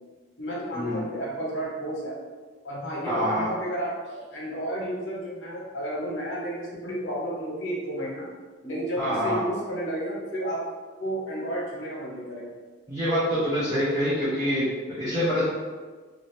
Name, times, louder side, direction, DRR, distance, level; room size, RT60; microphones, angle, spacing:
voice 1, 0.4-2.1 2.6-8.3 8.6-10.6 11.0-12.5, right 1 dB, 70° left, -6 dB, 1.0 m, -32 dB
voice 2, 3.0-3.5 9.0-9.4 12.9-14.6 15.0-15.4, equal, 15° right, -13 dB, 0.7 m, -25 dB
2.7 x 2.7 x 3.1 m, 1.4 s
head